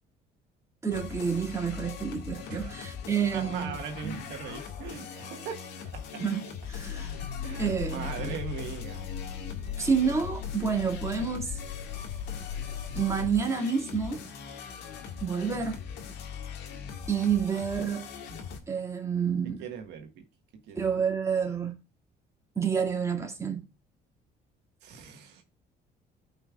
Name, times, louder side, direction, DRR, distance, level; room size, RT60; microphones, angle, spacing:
voice 1, 0.8-3.8 4.0-4.2 6.2-7.3 7.6-8.4 9.8-11.6 12.9-14.2 15.2-15.8 17.1-18.1 18.7-19.6 20.7-21.7 22.6-23.7, right 6 dB, 15° right, 2.3 m, -29 dB
sound 1, 0.9-18.6, left 7 dB, 90° left, 1.9 m, -41 dB
voice 2, 3.3-5.7 5.9-6.2 7.4-9.1 9.8-9.9 19.6-20.2 20.7-20.8 24.8-25.4, right 6 dB, 85° right, 1.6 m, -40 dB
sound 2, 6.7-13.3, left 8 dB, 30° left, 3.4 m, -38 dB
16.0 x 5.5 x 2.4 m
cardioid pair, 110°, 17 cm